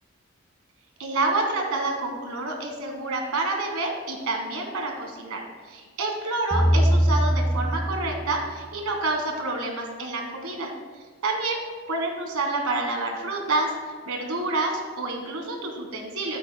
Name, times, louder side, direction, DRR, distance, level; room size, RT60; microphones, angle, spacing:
voice 1, 1.0-10.7 11.2-11.6 11.9-13.7 14.0-16.4, right 2 dB, 90° right, 3 dB, 1.5 m, -28 dB
sound 1, 6.5-8.7, equal, 5° right, 0.9 m, -22 dB
12.0 x 8.3 x 2.2 m, 1.5 s
head